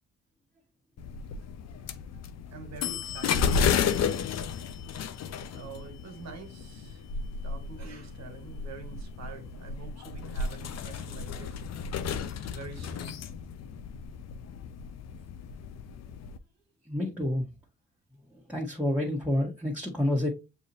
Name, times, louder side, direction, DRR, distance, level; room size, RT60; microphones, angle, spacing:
sound 1, 1.0-16.4, left 6 dB, 60° left, 0.6 m, -33 dB
voice 1, 2.5-3.9 5.5-7.0 7.4-11.6 12.4-13.2, right 4 dB, 60° right, 1.5 m, -46 dB
voice 2, 16.9-17.4 18.5-20.3, left 1 dB, 5° right, 1.4 m, -28 dB
6.9 x 2.8 x 2.7 m
supercardioid pair, 55°, 30 cm